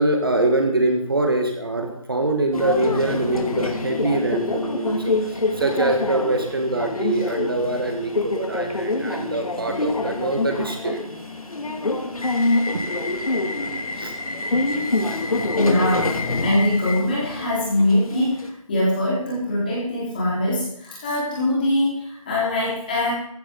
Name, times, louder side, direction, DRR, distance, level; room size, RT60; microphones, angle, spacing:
voice 1, 0.0-11.0 14.0-14.1, right 2 dB, 40° right, 4 dB, 1.7 m, -24 dB
Subway metro underground, 2.5-18.5, left 2 dB, 90° left, 2.7 m, -26 dB
voice 2, 15.5-18.4 18.7-23.1, left 1 dB, 15° left, -7 dB, 4.5 m, -22 dB
15.0 x 14.5 x 4.0 m, 0.73 s
figure-of-eight pair, 180°, 18 cm